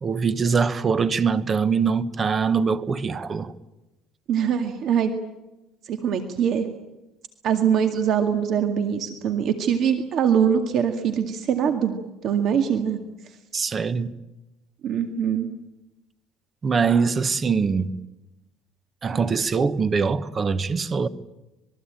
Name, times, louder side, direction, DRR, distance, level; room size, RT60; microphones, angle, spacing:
voice 1, 0.0-3.5 13.5-14.1 16.6-17.9 19.0-21.1, right 5 dB, 25° right, 1.1 m, -23 dB
voice 2, 4.3-5.1 5.8-6.7 7.4-12.0 12.2-13.0 14.8-15.5, right 8 dB, 45° right, 2.1 m, -23 dB
26.0 x 22.0 x 9.0 m
cardioid pair, 155°, 0 cm